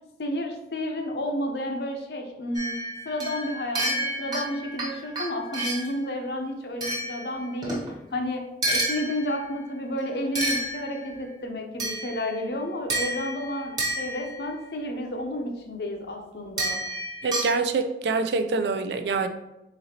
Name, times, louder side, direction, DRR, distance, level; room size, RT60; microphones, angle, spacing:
voice 1, 0.2-2.8 3.0-7.8 8.1-16.8, left 1 dB, 70° left, 3 dB, 0.6 m, -31 dB
sound 1, 2.5-6.0 6.8-7.9 8.6-9.6 10.3-11.2 11.8-12.4 12.9-14.6 16.6-17.5, right 1 dB, 25° right, 0.9 m, -30 dB
voice 2, 17.2-19.3, right 4 dB, 75° right, 8 dB, 0.4 m, -25 dB
4.0 x 3.9 x 2.8 m, 0.94 s
head